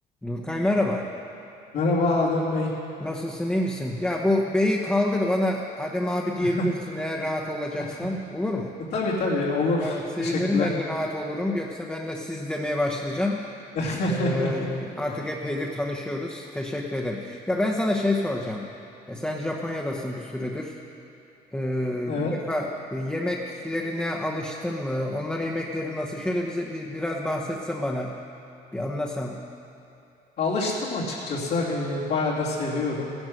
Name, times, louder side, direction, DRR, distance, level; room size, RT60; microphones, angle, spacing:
voice 1, 0.2-1.1 3.0-8.7 9.8-13.4 14.1-18.7 19.1-20.8 21.5-28.2 28.7-29.4, left 1 dB, 5° left, -1 dB, 1.0 m, -28 dB
voice 2, 1.7-2.7 8.9-10.7 13.7-14.7 15.1-15.2 22.1-22.3 30.4-33.1, left 2 dB, 75° left, -6 dB, 2.8 m, -26 dB
15.0 x 11.0 x 6.5 m, 2.8 s
cardioid pair, 110°, 17 cm